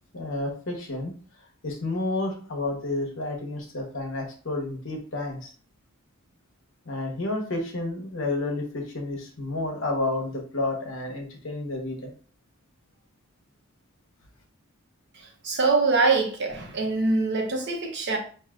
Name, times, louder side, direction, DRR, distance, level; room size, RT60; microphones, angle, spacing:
voice 1, 0.1-1.1 1.6-5.5 6.9-12.1, left 2 dB, 60° left, 1.0 m, -30 dB
voice 2, 15.1-18.2, right 3 dB, 55° right, 1.0 m, -24 dB
5.4 x 2.7 x 2.5 m
head